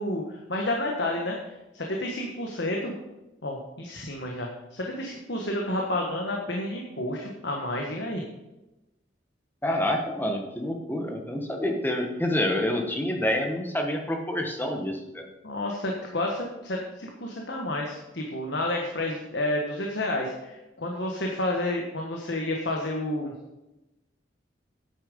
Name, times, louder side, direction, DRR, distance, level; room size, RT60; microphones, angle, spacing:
voice 1, 0.0-2.9 3.4-8.2 15.4-23.3, left 1 dB, 60° left, 0 dB, 1.5 m, -30 dB
voice 2, 9.6-15.2, left 1 dB, 10° left, 2 dB, 1.4 m, -28 dB
9.9 x 8.9 x 5.4 m, 0.99 s
head